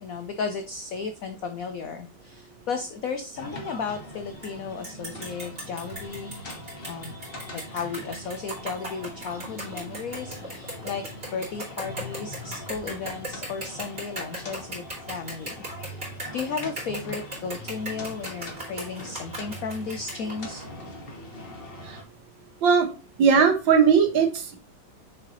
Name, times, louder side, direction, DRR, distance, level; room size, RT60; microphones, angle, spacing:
voice 1, 0.0-6.4 6.9-7.1 7.5-11.0 11.3-20.6, left 5 dB, 75° left, 7 dB, 0.8 m, -34 dB
sound 1, 3.4-22.0, left 1 dB, 35° left, 1.1 m, -42 dB
sound 2, 4.4-4.5 4.8-20.7, right 2 dB, 30° right, 3.3 m, -37 dB
voice 2, 23.2-24.6, right 6 dB, 70° right, 6 dB, 1.8 m, -19 dB
6.7 x 5.6 x 3.0 m, 0.34 s
omnidirectional pair, 2.2 m